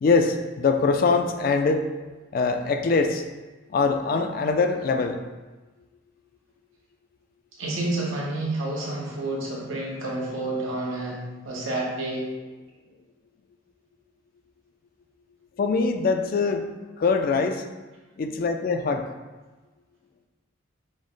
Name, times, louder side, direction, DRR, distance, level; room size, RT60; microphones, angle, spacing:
voice 1, 0.0-1.8 2.3-3.2 3.7-5.2 15.6-16.7 17.0-17.6 18.2-19.1, left 4 dB, 45° left, 6 dB, 0.3 m, -23 dB
voice 2, 7.6-12.3, right 2 dB, 85° right, -4 dB, 1.1 m, -29 dB
5.1 x 2.0 x 3.8 m, 1.2 s
head